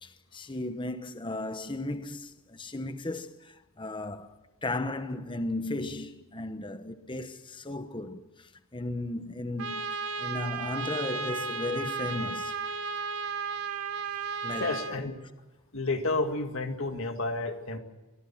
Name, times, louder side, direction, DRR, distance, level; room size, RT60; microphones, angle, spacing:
voice 1, 0.0-12.6 14.4-14.8, left 2 dB, 20° left, 1.0 m, -35 dB
Trumpet, 9.6-15.0, right 4 dB, 85° right, 1.8 m, -34 dB
voice 2, 14.6-15.2 15.7-17.8, left 2 dB, 65° left, 2.1 m, -30 dB
24.0 x 18.0 x 7.4 m
head